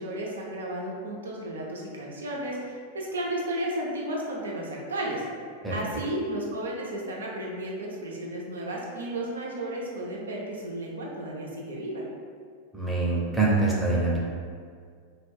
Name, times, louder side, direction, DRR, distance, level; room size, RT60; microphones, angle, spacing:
voice 1, 0.0-5.2 5.7-12.0, right 1 dB, 70° right, -3 dB, 0.5 m, -33 dB
voice 2, 12.7-14.2, right 3 dB, 5° right, -6 dB, 0.7 m, -24 dB
2.4 x 2.2 x 3.4 m, 2.1 s
figure-of-eight pair, 90°, 0 cm